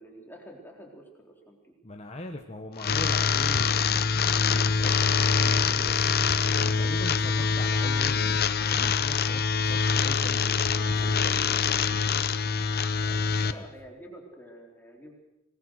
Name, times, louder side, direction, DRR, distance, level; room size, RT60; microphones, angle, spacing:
voice 1, 0.0-1.7 11.0-11.2 13.5-15.1, equal, 10° left, 0 dB, 3.8 m, -47 dB
voice 2, 1.8-12.0 13.1-13.6, left 1 dB, 30° left, 3 dB, 1.3 m, -41 dB
sound 1, 2.8-13.5, left 6 dB, 45° left, 0.8 m, -25 dB
26.0 x 20.0 x 6.4 m, 0.95 s
head